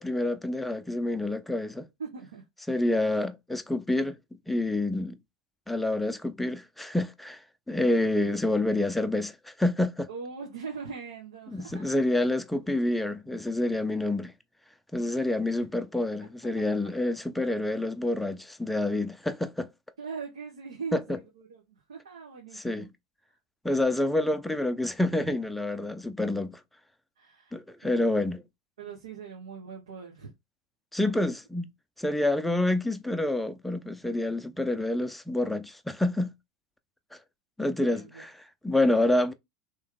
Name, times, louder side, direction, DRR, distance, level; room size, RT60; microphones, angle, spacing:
voice 1, 0.0-1.9 2.7-4.2 4.5-5.2 5.7-7.4 7.7-10.1 11.5-14.3 14.9-19.7 20.9-21.2 22.5-22.9 23.6-26.6 27.5-28.4 30.9-31.7 32.0-36.3 37.6-38.3 38.6-39.3, left 1 dB, 5° left, 0.5 m, -28 dB
voice 2, 2.0-2.4 10.1-11.9 20.0-22.9 27.2-28.3 28.8-30.3 31.0-31.1 37.8-38.2, right 5 dB, 80° right, 1.2 m, -41 dB
3.3 x 3.0 x 3.8 m
hypercardioid pair, 85°, 3 cm